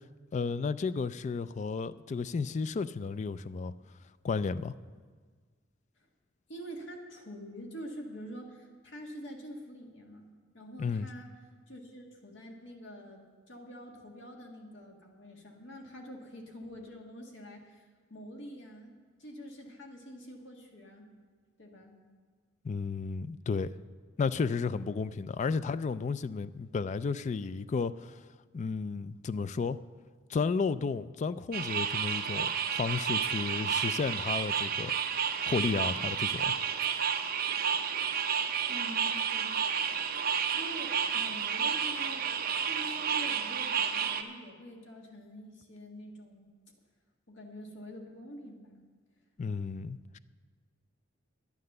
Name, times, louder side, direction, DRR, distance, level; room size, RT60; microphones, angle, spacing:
voice 1, 0.3-3.7 4.2-4.7 10.8-11.1 22.6-23.7 24.2-28.2 28.5-29.8 30.3-34.9 35.4-36.5 49.4-50.2, left 4 dB, 35° left, 15 dB, 0.3 m, -33 dB
voice 2, 6.5-11.3 11.7-17.8 18.1-21.1 21.6-22.0 38.7-39.6 40.6-46.5 47.3-48.8, equal, 65° left, 2 dB, 1.7 m, -46 dB
sound 1, 31.5-44.2, right 7 dB, 50° right, 0.7 m, -31 dB
10.5 x 9.6 x 6.6 m, 1.5 s
head